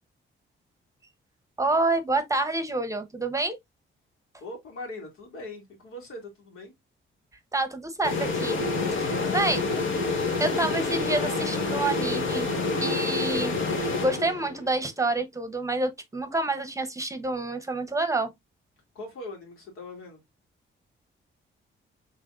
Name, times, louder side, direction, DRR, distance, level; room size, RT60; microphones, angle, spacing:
voice 1, 1.6-3.6 7.5-8.6 9.0-9.6 10.4-12.5 12.8-18.3, right 2 dB, 15° right, 0.8 m, -28 dB
voice 2, 4.4-6.7 9.1-9.7 18.9-20.2, left 2 dB, 85° left, 2.4 m, -41 dB
sound 1, 8.0-14.7, left 3 dB, 65° left, 1.4 m, -27 dB
6.2 x 3.4 x 2.5 m
wide cardioid pair, 150°, 21 cm